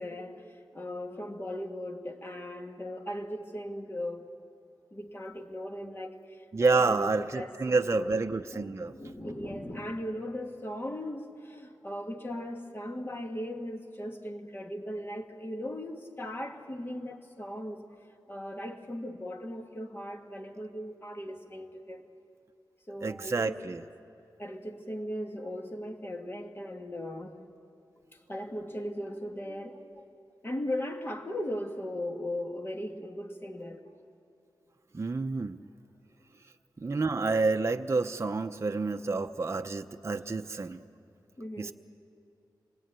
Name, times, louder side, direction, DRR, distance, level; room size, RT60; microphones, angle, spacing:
voice 1, 0.0-4.3 4.9-8.2 8.5-17.9 18.3-22.0 22.9-23.6 24.4-27.4 28.1-30.0 30.4-34.1 41.4-41.7, left 1 dB, 30° left, 1.8 m, -38 dB
voice 2, 6.5-8.9 23.0-23.8 34.9-35.6 36.8-40.8 41.6-41.7, right 3 dB, 35° right, 0.7 m, -29 dB
27.0 x 20.5 x 9.0 m
wide cardioid pair, 105°, 8 cm